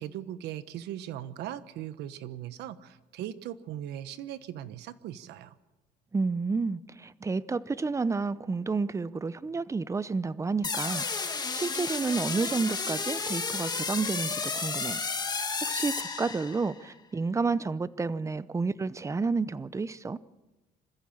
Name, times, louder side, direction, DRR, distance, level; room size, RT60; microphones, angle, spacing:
voice 1, 0.0-5.5, right 11 dB, 80° right, 1.2 m, -39 dB
voice 2, 6.1-15.0 15.4-20.2, right 4 dB, 15° right, 0.7 m, -30 dB
sound 1, 10.6-16.8, left 4 dB, 25° left, 1.8 m, -32 dB
26.5 x 14.5 x 7.4 m
cardioid pair, 110°, 17 cm